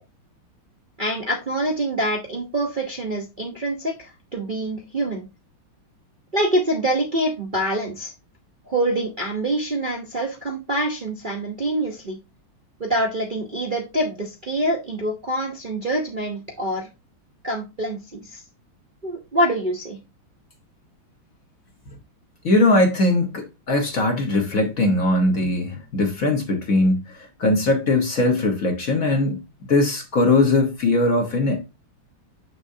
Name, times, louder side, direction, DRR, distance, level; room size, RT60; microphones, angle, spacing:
voice 1, 1.0-5.3 6.3-8.1 8.7-12.2 12.8-16.9 17.4-18.4 19.0-20.0, right 1 dB, 35° right, 0.8 m, -25 dB
voice 2, 22.4-29.4 29.7-31.7, left 2 dB, 45° left, 1.4 m, -20 dB
6.7 x 6.5 x 2.7 m
omnidirectional pair, 2.3 m